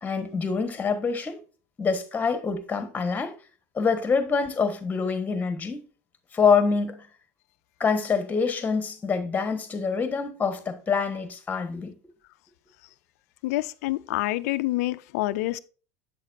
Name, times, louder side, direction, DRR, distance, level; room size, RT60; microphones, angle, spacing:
voice 1, 0.0-1.4 1.8-3.3 3.7-5.8 6.3-7.0 7.8-11.9, left 5 dB, 20° left, 1.3 m, -25 dB
voice 2, 13.4-15.6, left 18 dB, 75° left, 0.5 m, -27 dB
8.3 x 6.6 x 2.6 m
supercardioid pair, 110°, 8 cm